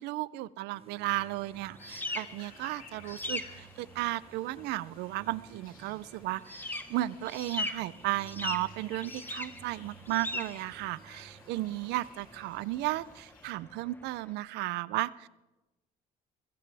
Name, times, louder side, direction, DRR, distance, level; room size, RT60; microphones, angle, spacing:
voice 1, 0.0-15.3, right 17 dB, 90° right, 20 dB, 0.5 m, -34 dB
sound 1, 0.7-12.4, right 7 dB, 35° right, 0.9 m, -57 dB
sound 2, 1.2-14.3, left 2 dB, 10° left, 1.2 m, -42 dB
sound 3, 1.8-13.5, left 5 dB, 55° left, 3.1 m, -57 dB
20.0 x 15.5 x 3.4 m, 1.0 s
cardioid pair, 110°, 17 cm